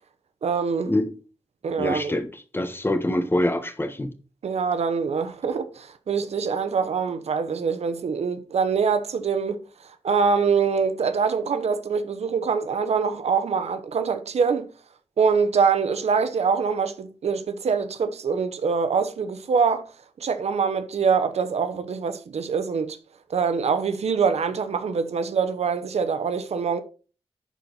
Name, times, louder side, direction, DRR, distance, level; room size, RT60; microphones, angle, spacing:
voice 1, 0.4-0.9 1.6-2.1 4.4-9.6 10.0-14.7 15.2-19.9 20.2-23.0 23.3-26.8, right 5 dB, 80° right, 0.9 m, -24 dB
voice 2, 1.8-4.1, left 1 dB, 20° left, 1.3 m, -25 dB
10.5 x 4.4 x 4.0 m
wide cardioid pair, 90°, 11 cm